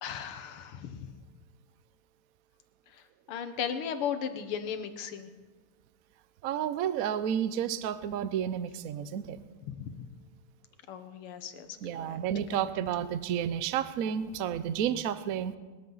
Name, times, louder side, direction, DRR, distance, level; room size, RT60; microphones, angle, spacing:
voice 1, 0.0-1.1 2.9-3.0 3.3-5.3 9.7-10.1 10.9-11.7 11.9-12.2 12.5-12.7, left 8 dB, 85° left, 9 dB, 1.9 m, -36 dB
voice 2, 6.4-9.4 11.8-15.6, right 9 dB, 80° right, 13 dB, 0.8 m, -31 dB
20.5 x 13.5 x 4.0 m, 1.3 s
omnidirectional pair, 2.3 m